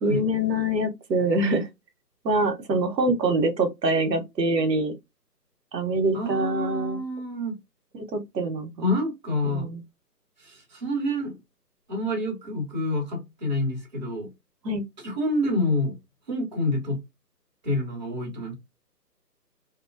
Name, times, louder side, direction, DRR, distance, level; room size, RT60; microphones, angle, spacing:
voice 1, 0.0-1.7 2.2-4.9 5.7-7.0 7.9-8.9 9.4-9.8 14.6-14.9, right 2 dB, 85° right, 0.9 m, -25 dB
voice 2, 6.1-7.6 8.8-9.7 10.4-11.4 11.9-14.3 15.0-16.0 16.3-17.0 17.6-18.5, left 1 dB, 25° right, 1.0 m, -27 dB
2.4 x 2.1 x 2.4 m
hypercardioid pair, 170°, 49 cm